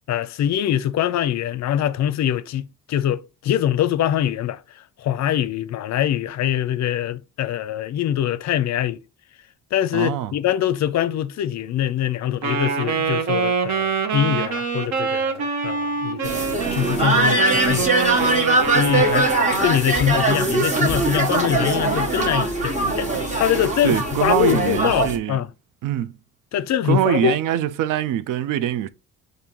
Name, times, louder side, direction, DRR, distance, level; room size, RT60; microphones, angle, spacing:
voice 1, 0.1-9.0 9.7-18.0 18.7-19.3 19.6-25.5 26.5-27.4, left 11 dB, 55° left, 0.5 m, -23 dB
voice 2, 9.9-10.3 23.8-25.4 25.8-26.1 26.8-28.9, right 11 dB, 75° right, 0.5 m, -23 dB
Wind instrument woodwind instrument, 12.4-19.5, right 5 dB, 60° right, 1.0 m, -25 dB
sound 1, 16.2-25.2, right 2 dB, 20° right, 1.2 m, -21 dB
6.7 x 2.6 x 2.9 m
cardioid pair, 105°, 32 cm